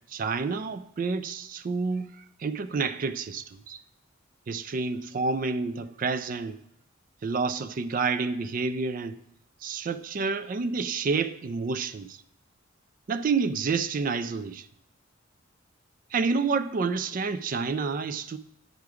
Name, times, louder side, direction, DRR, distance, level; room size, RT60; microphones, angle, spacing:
voice 1, 0.1-2.1 2.4-3.8 4.5-6.6 7.2-9.2 9.6-12.2 13.1-14.7 16.1-18.4, right 4 dB, 40° right, 0.3 m, -29 dB
9.3 x 4.6 x 4.9 m
head